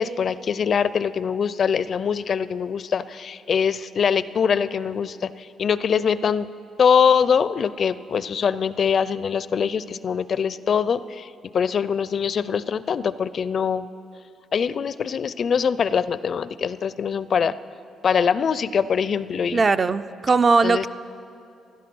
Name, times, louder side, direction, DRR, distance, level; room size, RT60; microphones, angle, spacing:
voice 1, 0.0-6.5 6.8-13.9 14.5-17.5 18.0-19.6 20.6-20.9, left 7 dB, 50° left, 16 dB, 0.4 m, -23 dB
voice 2, 19.5-20.9, right 4 dB, 35° right, 12 dB, 0.4 m, -19 dB
16.0 x 12.0 x 6.0 m, 2.5 s
cardioid pair, 90°, 0 cm